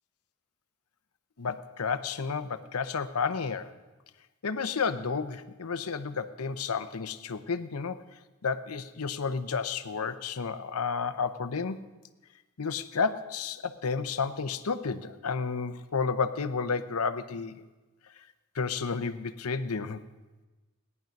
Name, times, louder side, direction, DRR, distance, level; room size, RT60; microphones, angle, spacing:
voice 1, 1.4-3.7 4.4-8.0 8.4-11.8 12.6-17.6 18.5-20.0, left 5 dB, 85° left, 11 dB, 0.8 m, -31 dB
17.5 x 11.0 x 5.3 m, 1.2 s
head